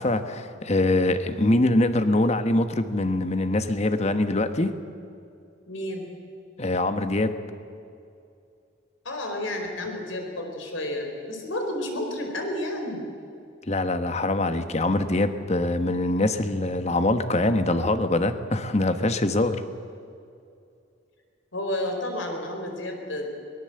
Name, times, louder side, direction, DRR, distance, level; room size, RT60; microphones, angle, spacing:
voice 1, 0.0-4.7 6.6-7.4 13.7-19.6, left 2 dB, 35° left, 9 dB, 1.2 m, -23 dB
voice 2, 5.7-6.1 9.0-13.0 21.5-23.3, left 1 dB, 85° left, 3 dB, 4.4 m, -31 dB
23.0 x 18.5 x 7.8 m, 2.5 s
head